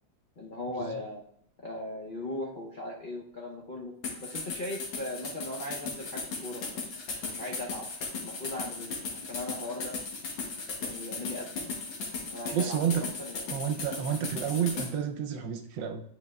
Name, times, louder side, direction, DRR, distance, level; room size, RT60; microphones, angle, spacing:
voice 1, 0.4-1.2 1.6-3.9 4.2-6.8 7.2-7.9 8.2-10.0 10.8-11.7 12.2-13.5, left 1 dB, 65° left, -2 dB, 0.5 m, -38 dB
sound 1, 4.0-14.9, left 4 dB, 80° left, 2.0 m, -37 dB
voice 2, 12.5-13.0 13.5-16.0, right 8 dB, 75° right, 5 dB, 1.3 m, -30 dB
9.8 x 5.2 x 2.3 m, 0.67 s
omnidirectional pair, 2.1 m